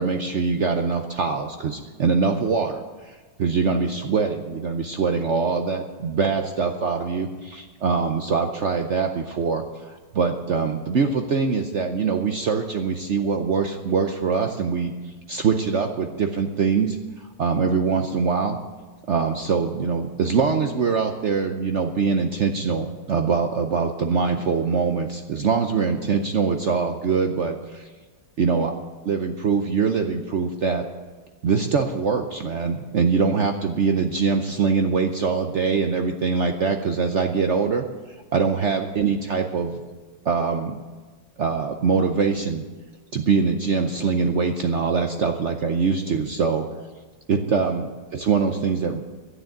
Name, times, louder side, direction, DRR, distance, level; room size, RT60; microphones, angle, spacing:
voice 1, 0.0-18.6 19.1-27.9 28.4-28.7 29.0-30.9 31.4-37.9 38.3-39.8 40.2-40.8 41.4-42.6 43.1-46.7 47.3-49.0, right 5 dB, 60° right, 5 dB, 0.7 m, -23 dB
11.5 x 9.6 x 9.0 m, 1.4 s
omnidirectional pair, 2.0 m